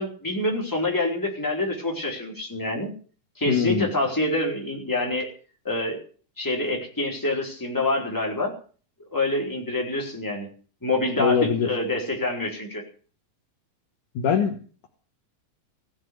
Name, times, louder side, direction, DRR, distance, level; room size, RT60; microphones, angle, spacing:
voice 1, 0.0-2.9 3.4-5.3 5.6-6.0 6.4-8.6 9.1-10.5 10.8-12.8, left 2 dB, 5° left, -1 dB, 4.0 m, -26 dB
voice 2, 3.5-3.9 11.2-11.7 14.2-14.6, left 7 dB, 65° left, 4 dB, 2.7 m, -22 dB
16.5 x 7.7 x 9.5 m, 0.41 s
omnidirectional pair, 4.1 m